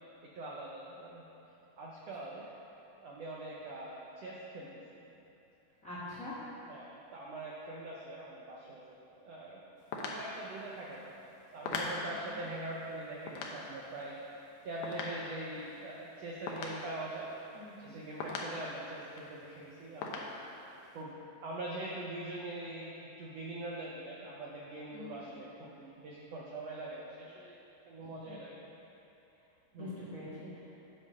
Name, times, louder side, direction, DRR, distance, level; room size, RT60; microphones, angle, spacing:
voice 1, 0.3-1.2 1.8-2.5 3.0-5.1 6.7-9.6 10.0-11.1 11.5-14.2 14.6-17.3 17.8-20.3 20.9-21.1 21.4-27.6 27.8-28.5 29.7-29.9, right 2 dB, 85° right, -4 dB, 1.4 m, -43 dB
voice 2, 5.8-6.3 12.1-12.5 17.5-17.9 24.9-25.3 28.0-28.4 29.7-30.7, left 2 dB, 45° left, -9 dB, 1.0 m, -45 dB
sound 1, 9.8-17.9 18.2-19.4 19.7-19.8 20.0-21.0, left 3 dB, 70° left, 1.7 m, -42 dB
7.6 x 6.9 x 6.4 m, 3.0 s
omnidirectional pair, 4.1 m